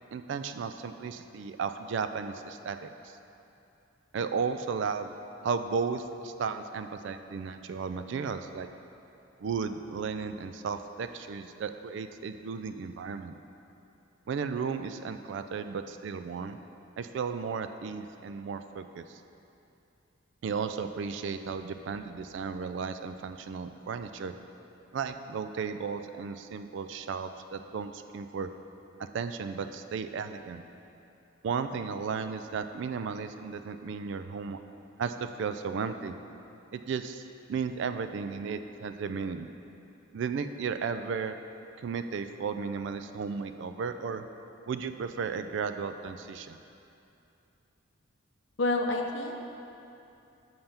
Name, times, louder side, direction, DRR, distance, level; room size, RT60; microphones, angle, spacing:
voice 1, 0.1-2.9 4.1-5.1 5.4-8.7 9.4-13.3 14.3-16.6 17.0-19.2 20.4-24.3 24.9-28.5 29.0-30.6 31.4-34.6 35.0-36.2 36.7-37.2 37.5-39.5 40.1-41.4 41.8-44.2 44.7-46.6, right 5 dB, 60° right, 9 dB, 0.3 m, -34 dB
voice 2, 48.6-49.5, left 2 dB, 60° left, 3 dB, 0.6 m, -28 dB
5.6 x 5.4 x 5.7 m, 2.8 s
head